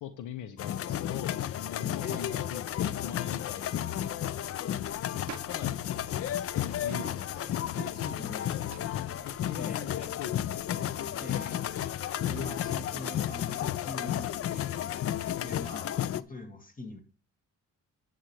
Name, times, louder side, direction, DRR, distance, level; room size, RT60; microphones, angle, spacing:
voice 1, 0.0-4.0 5.4-5.9 6.8-7.6 7.9-8.9 9.2-10.7, left 9 dB, 85° left, 10 dB, 0.9 m, -42 dB
sound 1, 0.6-16.2, left 11 dB, 50° left, 0.5 m, -33 dB
voice 2, 2.0-2.4 7.4-7.5 8.0-9.2 9.6-9.8 11.2-11.6 12.2-14.7 15.4-17.0, left 2 dB, 25° left, 4 dB, 2.3 m, -43 dB
sound 2, 4.9-10.9, right 13 dB, 70° right, 0.5 m, -50 dB
10.0 x 7.7 x 3.3 m, 0.37 s
cardioid pair, 90°, 30 cm